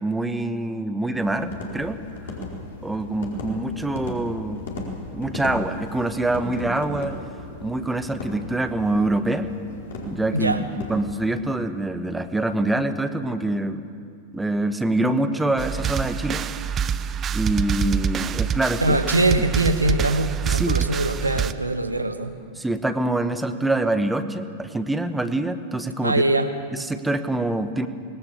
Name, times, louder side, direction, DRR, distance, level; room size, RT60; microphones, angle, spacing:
voice 1, 0.0-2.0 2.8-4.6 5.1-7.1 7.6-9.5 10.1-10.6 10.9-13.9 14.3-16.5 17.3-19.0 20.5-20.7 22.6-26.2 26.7-27.9, right 2 dB, 5° right, 9 dB, 1.3 m, -25 dB
sound 1, 1.1-11.3, left 2 dB, 60° left, 4.6 m, -36 dB
voice 2, 10.3-10.6 18.8-22.4 26.0-26.5, right 2 dB, 85° right, 8 dB, 1.4 m, -22 dB
sound 2, 15.6-21.5, right 8 dB, 25° right, 0.8 m, -26 dB
25.0 x 21.0 x 7.1 m, 2.2 s
figure-of-eight pair, 90°, 0 cm